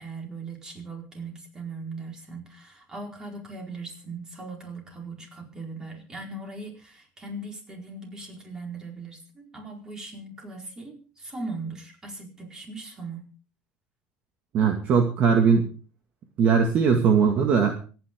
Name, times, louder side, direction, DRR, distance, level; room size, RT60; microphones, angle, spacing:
voice 1, 0.0-13.3, right 3 dB, 20° right, 2 dB, 4.5 m, -39 dB
voice 2, 14.5-15.7 16.4-17.8, right 6 dB, 45° right, 4 dB, 2.1 m, -20 dB
25.5 x 9.7 x 3.7 m, 0.37 s
cardioid pair, 135°, 4 cm